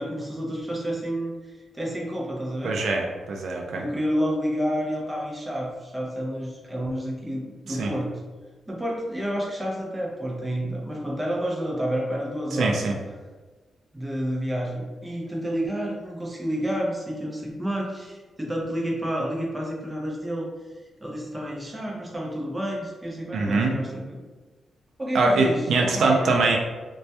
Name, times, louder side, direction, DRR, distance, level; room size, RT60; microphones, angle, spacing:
voice 1, 0.0-1.3 1.7-2.7 3.7-8.2 8.7-12.8 13.9-20.5 21.0-24.2 25.0-26.3, equal, 10° right, -2 dB, 0.4 m, -29 dB
voice 2, 2.6-3.8 7.8-7.9 12.6-12.9 23.3-23.8 25.1-26.6, right 3 dB, 75° right, 1 dB, 0.3 m, -23 dB
2.2 x 2.0 x 2.7 m, 1.3 s
wide cardioid pair, 140°, 0 cm